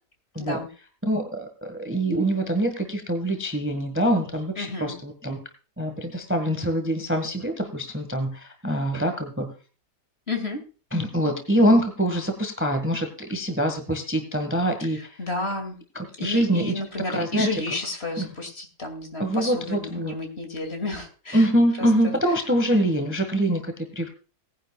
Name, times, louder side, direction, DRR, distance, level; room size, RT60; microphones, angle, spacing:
voice 1, 0.4-0.7 4.6-4.9 10.3-10.6 15.2-15.8 16.2-21.4 21.8-22.1, left 2 dB, 40° left, 5 dB, 2.7 m, -31 dB
voice 2, 1.1-5.4 5.8-9.5 10.9-15.2 15.9-16.8 17.1-17.6 18.2-18.3 19.2-20.1 21.3-24.1, equal, 10° right, 6 dB, 1.4 m, -24 dB
18.5 x 10.0 x 2.4 m, 0.35 s
omnidirectional pair, 1.8 m